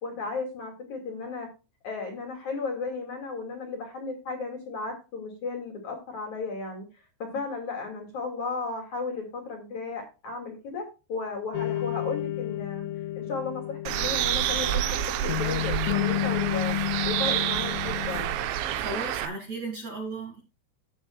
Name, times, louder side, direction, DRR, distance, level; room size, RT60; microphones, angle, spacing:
voice 1, 0.0-1.5 1.8-12.9 13.1-14.8 15.2-16.7 17.0-18.4, left 4 dB, 45° left, 2.8 m, -34 dB
sound 1, 11.5-18.9, left 14 dB, 85° left, 3.2 m, -32 dB
Bird, 13.9-19.3, right 12 dB, 80° right, 2.9 m, -28 dB
voice 2, 18.7-20.4, right 2 dB, 55° right, 1.9 m, -35 dB
16.5 x 7.1 x 2.3 m
omnidirectional pair, 5.9 m